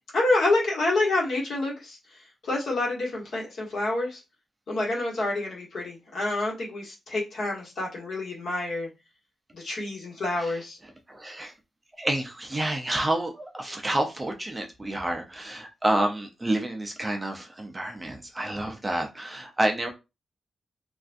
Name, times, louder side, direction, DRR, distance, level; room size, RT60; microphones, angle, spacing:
voice 1, 0.1-2.0 2.5-4.2 4.7-8.9 9.5-10.8, left 2 dB, 60° left, -2 dB, 1.2 m, -27 dB
voice 2, 11.1-11.5 12.0-19.9, right 1 dB, 15° right, 3 dB, 0.5 m, -29 dB
3.4 x 2.4 x 2.5 m, 0.26 s
wide cardioid pair, 160°, 0 cm